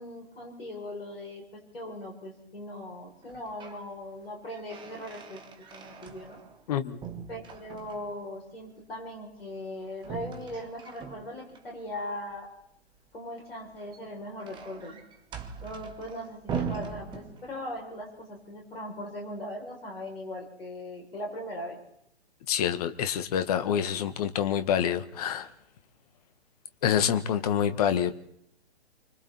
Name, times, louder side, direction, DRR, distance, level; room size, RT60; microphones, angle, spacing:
voice 1, 0.0-5.4 5.7-6.4 7.3-12.5 13.1-15.0 15.6-21.8, left 1 dB, 65° left, 7.6 m, -39 dB
sound 1, 3.2-3.9 4.2-6.7 7.0-8.2 10.0-11.6 13.6-17.8, right 6 dB, 15° right, 1.7 m, -40 dB
voice 2, 22.5-25.5 26.8-28.2, left 9 dB, 35° left, 1.6 m, -27 dB
29.0 x 25.0 x 4.5 m
figure-of-eight pair, 120°, 32 cm